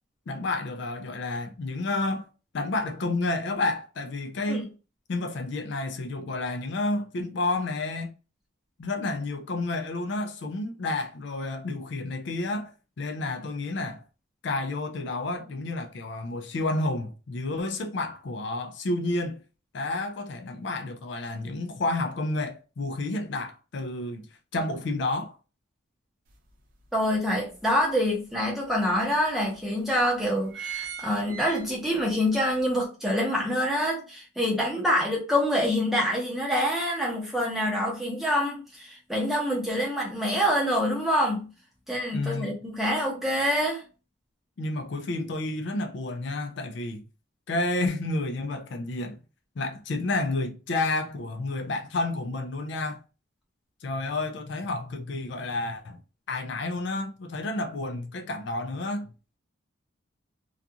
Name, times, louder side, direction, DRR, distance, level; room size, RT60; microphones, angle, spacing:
voice 1, 0.3-2.3 2.5-4.7 5.1-8.1 8.8-14.0 14.4-19.4 19.7-24.3 24.5-25.3 42.1-42.5 44.6-47.0 47.5-49.2 49.6-53.0 53.8-56.0 56.3-59.1, left 2 dB, 65° left, 0.4 m, -30 dB
sound 1, 26.3-26.4 26.9-28.0 28.7-28.8 29.0-29.1 29.8-30.0 30.3-32.1 32.5-32.6, right 9 dB, 45° right, 0.5 m, -38 dB
voice 2, 26.9-41.5 41.9-43.8, equal, ahead, 0.8 m, -26 dB
2.4 x 2.3 x 2.7 m
head